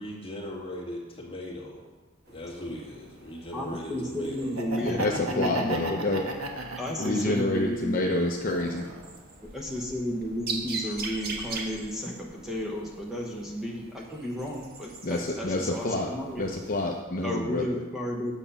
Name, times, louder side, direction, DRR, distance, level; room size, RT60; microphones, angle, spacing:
voice 1, 0.0-1.8 2.3-4.6, left 1 dB, 25° left, -3 dB, 2.0 m, -39 dB
sound 1, 2.2-17.0, right 3 dB, 45° right, 1.3 m, -43 dB
voice 2, 3.5-5.7 6.8-8.0 9.4-16.5 17.2-18.3, equal, ahead, -2 dB, 0.9 m, -33 dB
Laughter, 4.4-7.6 8.0-9.2, right 2 dB, 85° right, 1.2 m, -35 dB
voice 3, 4.8-6.2 7.0-8.9 15.0-16.1 16.4-17.8, left 2 dB, 40° left, 0 dB, 0.7 m, -28 dB
9.0 x 7.1 x 5.6 m, 1.3 s
head